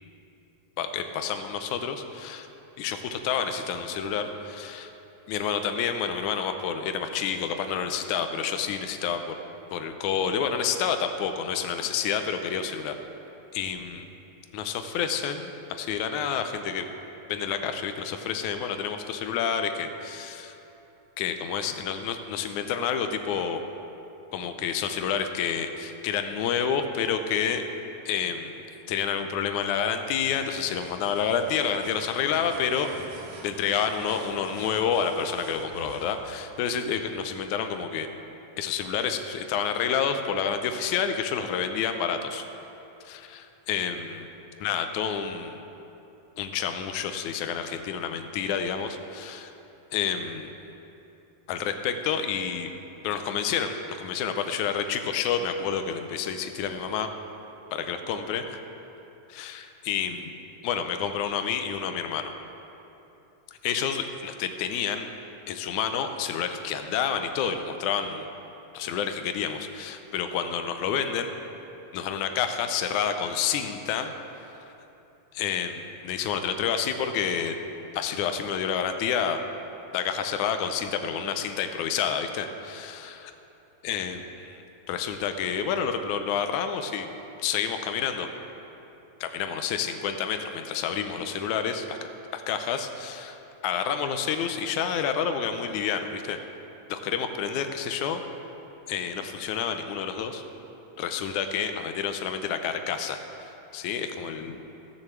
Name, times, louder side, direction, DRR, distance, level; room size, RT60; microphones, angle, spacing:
voice 1, 0.8-2.5 2.8-4.9 5.3-9.4 9.7-13.0 13.5-14.1 14.5-16.9 17.3-20.5 21.2-23.6 24.3-27.6 28.1-28.5 28.9-32.9 33.4-38.1 38.6-42.4 43.1-44.3 44.6-45.6 46.4-49.5 49.9-50.5 51.5-52.7 53.0-57.1 57.7-58.6 59.3-60.3 60.6-62.3 63.6-65.1 65.5-68.3 68.7-71.3 71.9-74.1 75.3-77.6 77.9-79.4 79.9-83.2 83.8-84.6 84.9-87.1 87.4-88.3 89.2-92.0 92.3-93.4 93.6-96.4 96.9-98.2 98.9-100.4 101.0-104.6, left 7 dB, 85° left, 7 dB, 2.1 m, -29 dB
sound 1, 30.2-36.2, right 2 dB, 80° right, 2.6 m, -46 dB
14.5 x 6.6 x 7.2 m, 2.9 s
omnidirectional pair, 3.5 m